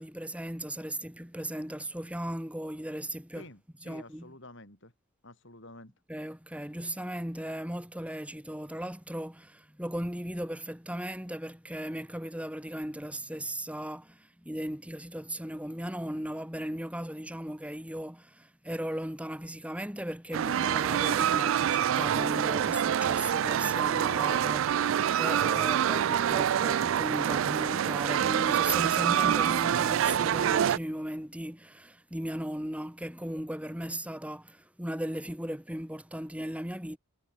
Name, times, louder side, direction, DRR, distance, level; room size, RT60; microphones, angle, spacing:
voice 1, 0.0-3.5 3.8-4.3 6.1-37.0, right 1 dB, 5° right, 2.0 m, -37 dB
voice 2, 3.3-4.9 5.2-5.9, left 2 dB, 55° left, 5.9 m, -50 dB
sound 1, 20.3-30.8, right 9 dB, 60° right, 0.3 m, -26 dB
head